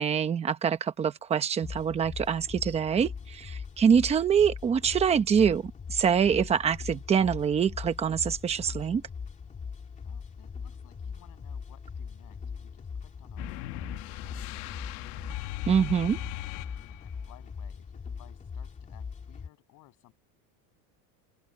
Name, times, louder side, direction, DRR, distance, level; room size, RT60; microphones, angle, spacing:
voice 1, 0.0-9.0 15.7-16.2, right 7 dB, 15° right, 0.8 m, -25 dB
sound 1, 1.6-19.5, left 6 dB, 15° left, 2.7 m, -41 dB
voice 2, 10.0-14.9 15.7-20.1, left 18 dB, 40° left, 7.4 m, -59 dB
sound 2, 13.4-17.2, left 21 dB, 65° left, 1.6 m, -39 dB
open air
cardioid pair, 180°, 49 cm